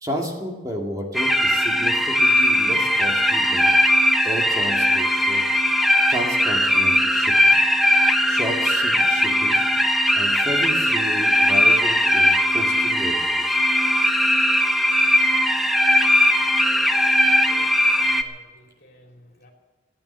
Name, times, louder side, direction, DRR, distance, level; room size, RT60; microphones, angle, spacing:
voice 1, 0.0-3.7 4.2-5.4 6.1-7.6 8.2-9.7 10.1-13.6, equal, 20° right, 0 dB, 2.3 m, -32 dB
sound 1, 1.1-18.2, equal, ahead, 0.9 m, -19 dB
voice 2, 17.3-19.5, right 1 dB, 60° left, 1 dB, 3.0 m, -52 dB
15.5 x 9.1 x 10.0 m, 1.2 s
head